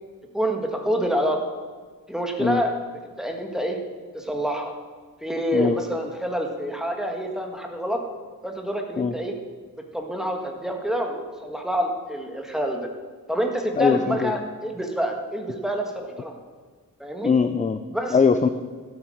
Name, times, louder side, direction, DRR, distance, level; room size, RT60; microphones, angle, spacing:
voice 1, 0.3-1.4 2.1-2.7 3.2-3.8 4.1-4.7 5.2-8.0 8.4-9.3 9.9-12.9 13.3-16.3 17.0-17.3 17.9-18.2, equal, ahead, 2 dB, 1.7 m, -27 dB
voice 2, 13.8-14.3 17.2-17.8 18.1-18.5, left 5 dB, 20° left, 10 dB, 0.5 m, -21 dB
13.0 x 8.4 x 6.5 m, 1.6 s
wide cardioid pair, 135°, 36 cm